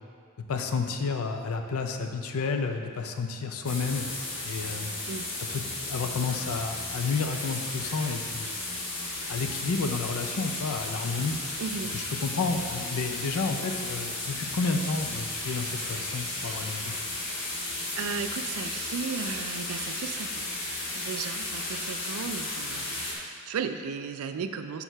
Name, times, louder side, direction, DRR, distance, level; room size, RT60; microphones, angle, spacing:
voice 1, 0.5-4.1 4.4-4.9 5.4-8.5 9.3-11.4 11.9-16.9, left 4 dB, 85° left, 5 dB, 0.5 m, -31 dB
sound 1, 3.6-23.1, left 2 dB, 65° left, 1.1 m, -34 dB
voice 2, 11.6-12.0 17.1-17.3 17.9-20.4 20.9-24.8, right 6 dB, 80° right, 8 dB, 0.4 m, -35 dB
5.5 x 4.6 x 4.4 m, 2.2 s
head